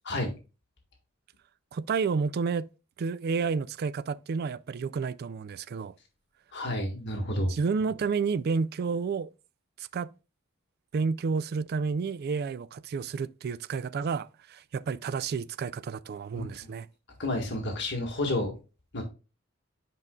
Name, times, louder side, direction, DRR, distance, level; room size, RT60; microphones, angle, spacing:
voice 1, 1.7-2.7 3.0-5.9 7.5-9.3 9.8-10.1 10.9-16.9, right 5 dB, 50° right, 0.3 m, -30 dB
voice 2, 6.5-7.5 16.3-16.5 17.2-18.5 18.9-19.1, left 1 dB, 60° left, 1.7 m, -30 dB
9.6 x 5.1 x 2.3 m
head